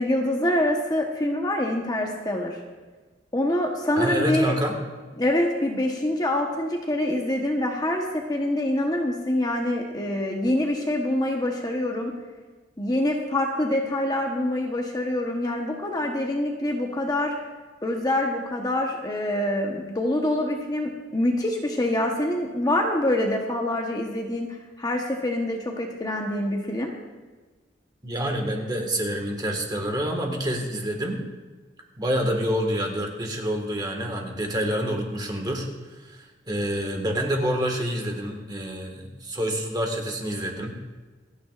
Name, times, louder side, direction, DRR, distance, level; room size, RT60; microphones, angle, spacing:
voice 1, 0.0-2.6 3.3-4.5 5.2-12.1 12.8-17.3 17.8-26.9, left 1 dB, 20° left, 1 dB, 1.0 m, -25 dB
voice 2, 3.9-4.7 28.0-31.2 32.0-40.7, equal, 25° right, 2 dB, 1.7 m, -27 dB
27.5 x 9.5 x 2.5 m, 1.3 s
head